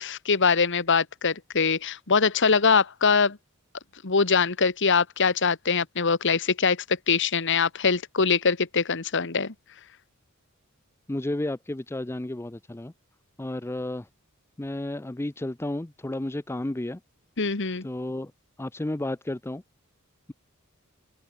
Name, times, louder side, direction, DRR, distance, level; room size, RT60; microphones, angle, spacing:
voice 1, 0.0-3.4 4.0-6.8 7.1-9.5 17.4-17.8, left 5 dB, 60° left, 1.6 m, -23 dB
voice 2, 11.1-12.9 13.4-14.1 14.6-17.0 17.8-18.3 18.6-19.6, left 1 dB, 10° left, 0.5 m, -32 dB
open air
head